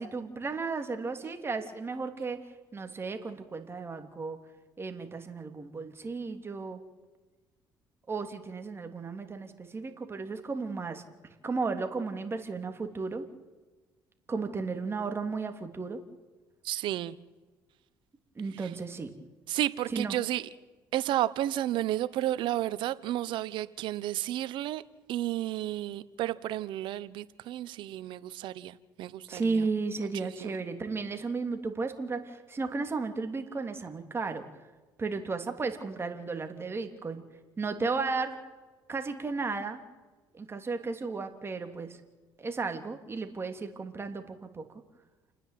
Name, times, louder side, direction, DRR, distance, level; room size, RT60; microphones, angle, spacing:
voice 1, 0.0-2.4 2.7-4.4 4.8-6.8 8.1-11.0 11.4-13.3 14.3-16.0 18.4-19.1 19.9-20.2 29.3-34.4 35.0-37.2 37.6-38.4 38.9-39.8 40.4-41.9 42.4-44.6, right 4 dB, 30° right, 6 dB, 3.1 m, -34 dB
voice 2, 16.6-17.2 18.5-18.7 19.5-20.4 20.9-24.8 25.1-29.7 30.2-30.6, right 13 dB, 70° right, 16 dB, 1.0 m, -32 dB
29.5 x 10.0 x 9.3 m, 1.2 s
supercardioid pair, 80°, 8 cm